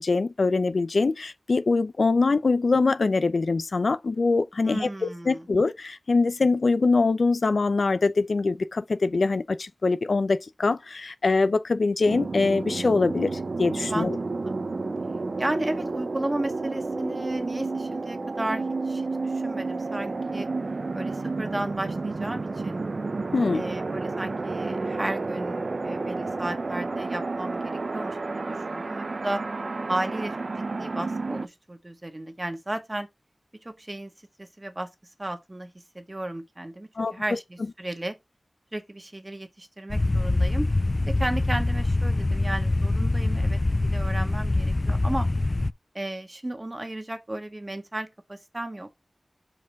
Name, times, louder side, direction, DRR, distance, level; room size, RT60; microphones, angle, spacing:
voice 1, 0.0-14.2 23.3-23.7 37.0-37.1, left 3 dB, 80° left, 0.6 m, -23 dB
voice 2, 4.6-5.5 13.9-14.1 14.4-14.5 15.4-20.5 20.9-22.8 23.5-29.4 29.9-30.4 30.8-33.1 33.6-34.1 34.4-34.9 35.2-38.2 38.7-40.7 41.1-45.3 45.9-48.9, right 1 dB, 30° right, 1.7 m, -34 dB
sound 1, 12.0-31.5, right 3 dB, 70° right, 0.7 m, -31 dB
sound 2, 39.9-45.7, left 2 dB, 45° left, 0.4 m, -24 dB
5.9 x 4.9 x 4.7 m
wide cardioid pair, 50°, 0 cm